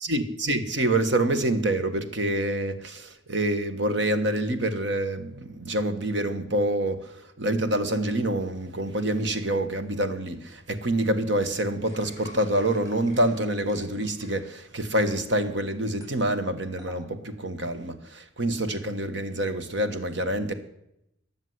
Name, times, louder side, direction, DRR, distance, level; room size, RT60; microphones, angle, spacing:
voice 1, 0.0-20.5, right 1 dB, 65° right, 8 dB, 1.5 m, -27 dB
sound 1, 11.9-15.1 16.0-16.1 16.8-17.1, equal, 20° right, 5.4 m, -49 dB
20.5 x 7.3 x 7.9 m, 0.81 s
head